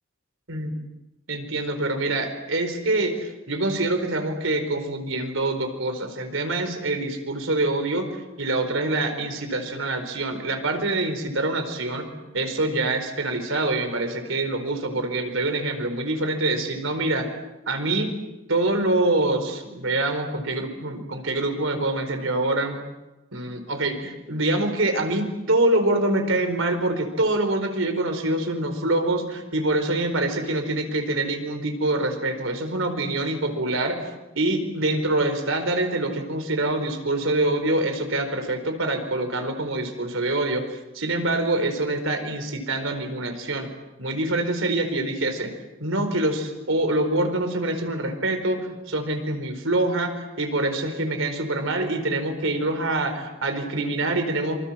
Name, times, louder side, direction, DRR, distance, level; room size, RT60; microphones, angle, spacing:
voice 1, 1.3-8.1 8.4-12.1 12.3-17.3 17.7-18.1 18.5-22.8 23.3-34.1 34.3-40.6 40.9-43.7 44.0-45.5 45.8-54.6, right 2 dB, 70° right, 7 dB, 4.6 m, -25 dB
27.0 x 26.0 x 7.6 m, 1.0 s
head